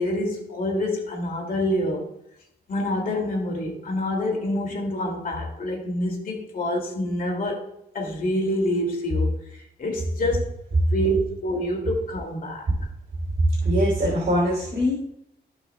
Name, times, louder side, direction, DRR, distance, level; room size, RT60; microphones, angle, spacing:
voice 1, 0.0-2.1 2.7-9.4 9.8-10.5 10.9-12.7, left 1 dB, 50° left, 2.3 m, -26 dB
voice 2, 13.6-14.9, equal, 50° right, 3.1 m, -22 dB
15.5 x 5.5 x 2.2 m
wide cardioid pair, 115°, 18 cm